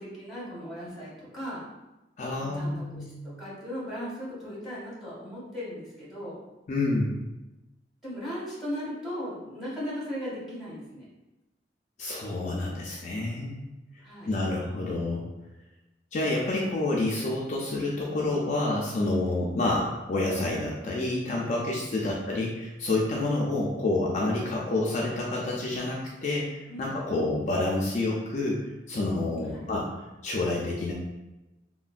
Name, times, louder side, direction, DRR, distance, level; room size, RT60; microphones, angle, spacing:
voice 1, 0.0-1.7 2.4-6.4 8.0-11.1 14.0-14.3 22.0-22.2 26.7-26.9 29.5-29.7, equal, ahead, -8 dB, 1.2 m, -37 dB
voice 2, 2.2-3.2 6.7-7.2 12.0-13.6 14.3-15.2 16.1-28.6 28.9-29.9 30.2-30.9, left 2 dB, 40° left, -3 dB, 0.4 m, -28 dB
3.1 x 2.1 x 2.4 m, 1.0 s
head